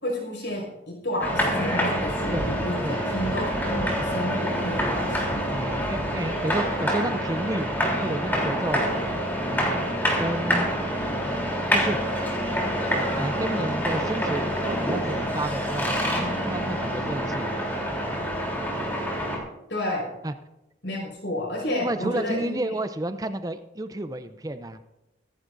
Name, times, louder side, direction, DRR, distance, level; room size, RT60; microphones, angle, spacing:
voice 1, 0.0-5.4 19.7-20.1 20.8-22.6, left 1 dB, 75° left, 0 dB, 5.8 m, -31 dB
sound 1, 1.2-19.4, equal, 10° left, 3.3 m, -26 dB
voice 2, 5.5-7.7 8.0-9.8 10.2-10.7 11.7-12.0 13.2-17.7 18.0-18.1 20.2-20.3 21.7-24.9, right 1 dB, 20° right, 10 dB, 0.5 m, -31 dB
24.0 x 11.0 x 2.6 m, 0.94 s
head